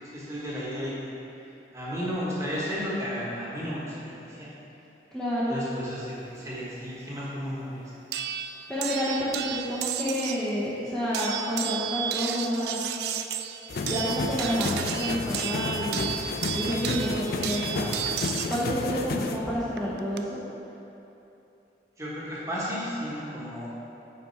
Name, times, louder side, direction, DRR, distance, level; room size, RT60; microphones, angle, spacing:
voice 1, 0.1-0.9 1.7-4.1 4.4-4.5 5.5-7.9 22.0-23.7, equal, 15° right, -7 dB, 1.2 m, -33 dB
voice 2, 5.1-5.5 8.7-12.8 13.9-16.1 16.6-18.0 18.5-20.4, equal, 5° left, -12 dB, 0.9 m, -29 dB
sound 1, 8.1-10.5 11.1-18.7 19.8-20.2, right 9 dB, 65° right, 0.3 m, -33 dB
sound 2, 13.7-19.4, left 3 dB, 60° left, 0.4 m, -32 dB
5.9 x 5.0 x 4.5 m, 2.9 s
head